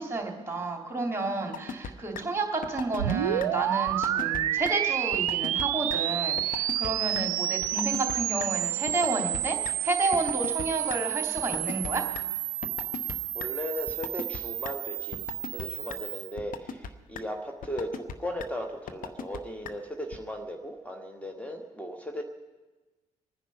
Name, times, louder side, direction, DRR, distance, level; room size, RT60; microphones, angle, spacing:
voice 1, 0.0-12.0, right 3 dB, 15° right, 2 dB, 3.2 m, -31 dB
sound 1, 1.5-1.9 2.2-2.3 2.6-3.1 3.4-3.5 3.9-4.4 4.7-4.8 5.1-5.6 5.9-6.0 6.4-6.9 7.1-7.2 7.6-8.2 8.4-8.5 8.9-9.7 10.1-11.0 11.4-12.2 12.6-13.1 13.4-13.5 13.9-14.4 14.7-14.8 15.1-15.6 15.9-16.0 16.4-16.9 17.2-17.3 17.6-18.1 18.4-18.5 18.9-19.4 19.7-19.8 20.1-20.2, left 7 dB, 50° left, 0.9 m, -36 dB
sound 2, 3.0-16.3, right 13 dB, 80° right, 0.4 m, -30 dB
voice 2, 13.3-15.2 15.5-22.2, equal, 10° left, 3 dB, 1.5 m, -37 dB
24.0 x 10.0 x 5.6 m, 1.2 s
figure-of-eight pair, 45°, 18 cm